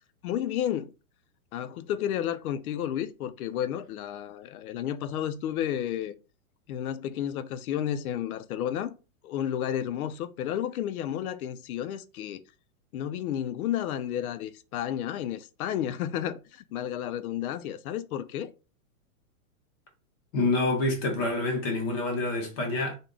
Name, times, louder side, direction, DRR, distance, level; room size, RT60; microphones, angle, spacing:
voice 1, 0.2-0.9 1.5-6.1 6.7-8.9 9.2-12.4 12.9-18.5, left 10 dB, 75° left, 0.6 m, -32 dB
voice 2, 20.3-22.9, left 2 dB, 15° left, 0.4 m, -27 dB
3.6 x 2.2 x 3.7 m
supercardioid pair, 155°, 44 cm